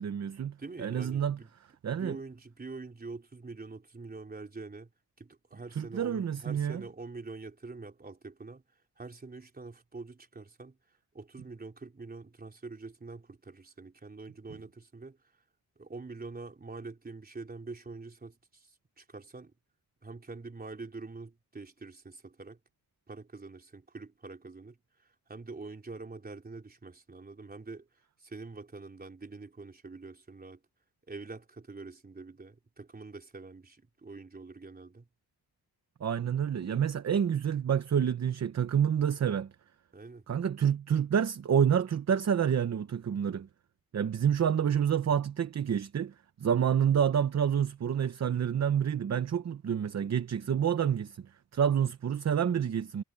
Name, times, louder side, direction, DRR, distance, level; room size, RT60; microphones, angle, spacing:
voice 1, 0.0-1.4 1.8-2.2 5.8-6.8 36.0-39.5 40.3-43.5 43.9-51.3 51.5-53.0, right 8 dB, 45° right, 0.8 m, -28 dB
voice 2, 0.6-1.5 1.9-4.9 5.2-8.6 9.0-10.8 11.1-15.2 15.8-19.5 20.0-22.6 23.1-27.9 28.2-30.6 31.1-35.1 39.9-40.3, right 3 dB, 25° right, 3.9 m, -45 dB
wide cardioid pair, 160°, 38 cm